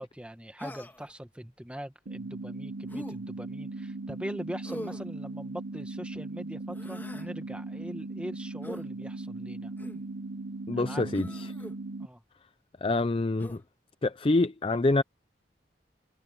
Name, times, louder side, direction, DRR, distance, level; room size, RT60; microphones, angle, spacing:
voice 1, 0.0-9.7 10.7-11.1 12.0-12.2, equal, 5° right, 1.6 m, -42 dB
Human voice, 0.6-1.1 2.9-3.2 4.6-5.1 6.7-7.3 8.6-8.9 9.8-10.1 11.1-11.7 13.4-13.6, equal, 10° left, 2.8 m, -42 dB
sound 1, 2.1-12.1, right 2 dB, 85° right, 0.8 m, -38 dB
voice 2, 10.7-11.5 12.8-13.6 14.0-15.0, left 2 dB, 30° left, 0.5 m, -26 dB
head